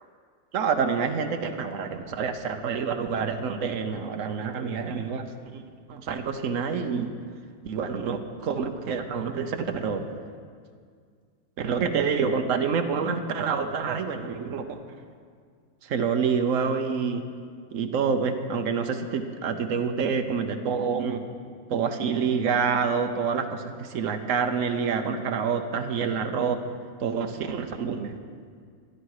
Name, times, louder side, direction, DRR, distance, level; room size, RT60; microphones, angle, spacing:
voice 1, 0.5-5.6 5.9-7.1 7.6-10.1 11.6-14.7 15.8-17.2 17.7-21.2 21.7-26.6 27.0-28.2, right 6 dB, 60° right, 7 dB, 0.9 m, -27 dB
13.0 x 11.5 x 4.8 m, 2.1 s
omnidirectional pair, 2.0 m